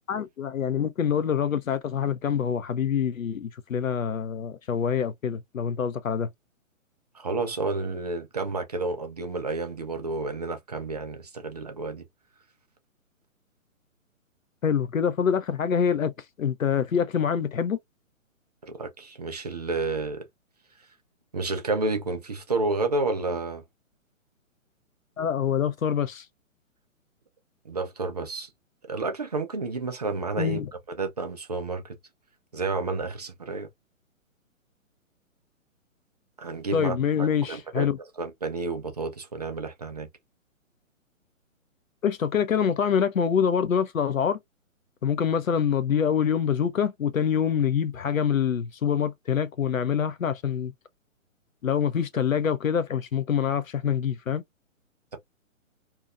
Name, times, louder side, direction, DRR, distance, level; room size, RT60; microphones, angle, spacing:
voice 1, 0.1-6.3 14.6-16.1 16.4-17.8 25.2-26.2 30.4-30.7 36.7-38.0 42.0-44.4 45.0-50.7 51.6-54.4, left 7 dB, 75° left, 0.7 m, -25 dB
voice 2, 7.1-12.0 18.6-20.2 21.3-23.6 27.7-28.5 28.9-30.6 30.9-32.0 32.5-33.7 36.4-37.9 38.2-40.1 52.1-52.2, right 3 dB, 30° right, 0.4 m, -30 dB
2.7 x 2.3 x 2.4 m
figure-of-eight pair, 130°, 41 cm